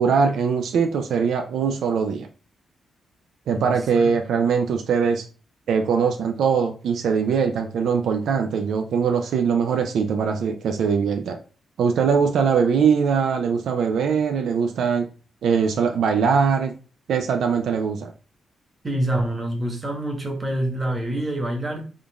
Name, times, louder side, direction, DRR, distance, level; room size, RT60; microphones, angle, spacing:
voice 1, 0.0-2.3 3.5-5.2 5.7-11.4 11.8-15.1 15.4-16.7 17.1-18.1, right 6 dB, 80° right, 0.4 m, -21 dB
voice 2, 3.5-4.1 18.8-21.8, right 1 dB, 25° right, 1.1 m, -26 dB
3.6 x 2.4 x 3.4 m
cardioid pair, 85°, 0 cm